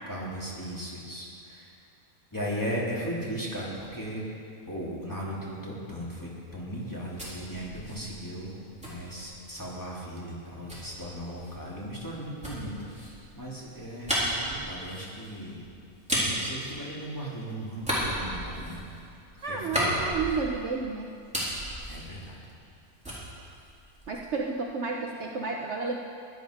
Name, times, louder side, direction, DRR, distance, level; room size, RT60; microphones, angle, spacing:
voice 1, 0.1-1.7 2.3-4.3 4.7-15.6 16.2-18.8 19.3-20.1 21.9-22.4, equal, 10° left, -6 dB, 2.7 m, -37 dB
sound 1, 6.8-9.8 10.7-17.4 17.7-20.8 21.1-22.8 23.0-24.4, equal, 5° right, 3.6 m, -34 dB
voice 2, 19.4-21.1 24.1-26.0, right 4 dB, 55° right, 0 dB, 1.1 m, -31 dB
16.0 x 11.0 x 5.1 m, 2.4 s
omnidirectional pair, 1.6 m